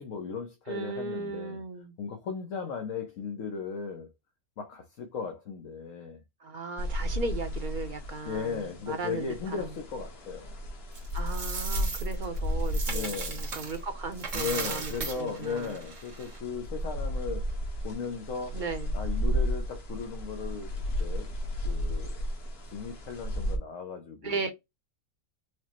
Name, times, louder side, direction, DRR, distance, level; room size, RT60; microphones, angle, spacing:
voice 1, 0.0-1.6 2.0-4.1 4.6-6.2 8.2-10.5 12.8-13.4 14.3-17.5 17.8-18.6 18.9-20.7 21.0-21.3 21.6-22.2 22.7-24.4, left 6 dB, 80° left, 1.1 m, -36 dB
voice 2, 0.7-1.9 6.4-9.6 11.1-15.8 18.5-18.9 24.2-24.5, right 4 dB, 45° right, 0.7 m, -36 dB
sound 1, 6.8-23.6, equal, 55° left, 1.2 m, -34 dB
Coin (dropping), 10.9-13.8 14.1-16.4, right 4 dB, 75° right, 1.4 m, -37 dB
4.7 x 2.1 x 2.9 m
omnidirectional pair, 1.3 m